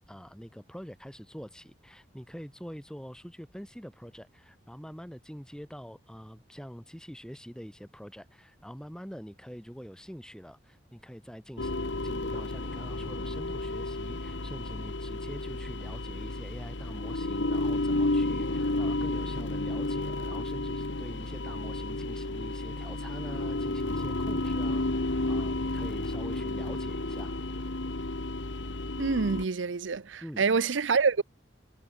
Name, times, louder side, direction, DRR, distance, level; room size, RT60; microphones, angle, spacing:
voice 1, 0.1-11.7 12.0-27.8 30.2-30.5, equal, 5° left, 2.4 m, -45 dB
sound 1, 11.6-29.4, left 2 dB, 80° left, 1.6 m, -32 dB
voice 2, 29.0-31.2, right 5 dB, 90° right, 0.7 m, -26 dB
head